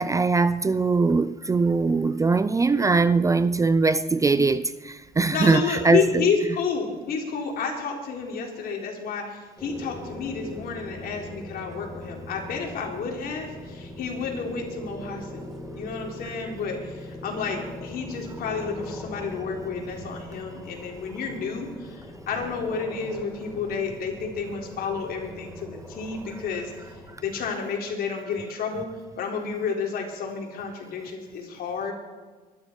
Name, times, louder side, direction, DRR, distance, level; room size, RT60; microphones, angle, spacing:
voice 1, 0.0-6.2, right 4 dB, 20° right, 0.5 m, -21 dB
voice 2, 5.3-15.5 15.7-28.9 29.2-31.9, left 5 dB, 65° left, 4.0 m, -30 dB
sound 1, 9.6-27.2, left 1 dB, ahead, 3.0 m, -41 dB
24.0 x 12.0 x 4.6 m
cardioid pair, 110°, 17 cm